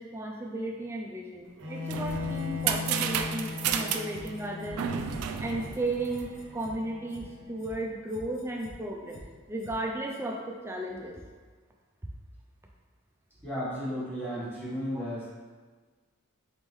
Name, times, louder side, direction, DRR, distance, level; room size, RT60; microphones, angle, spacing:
voice 1, 0.0-4.8 5.4-9.2 9.5-11.3 14.9-15.0, right 1 dB, 10° right, -1 dB, 0.4 m, -35 dB
Bowed string instrument, 1.6-7.6, left 5 dB, 60° right, 0.7 m, -39 dB
sound 1, 1.6-6.6, right 8 dB, 90° right, 0.3 m, -33 dB
sound 2, 2.2-2.8 3.1-3.2 3.6-3.7 4.1-4.7 5.1-5.2 5.6-5.8 6.1-6.8 7.1-7.2 7.6-7.7 8.1-8.8 9.1-9.2 9.6-9.8 10.1-10.2, equal, 75° left, 0.7 m, -47 dB
voice 2, 13.4-15.3, equal, 10° left, -10 dB, 1.3 m, -34 dB
4.1 x 3.6 x 3.1 m, 1.4 s
head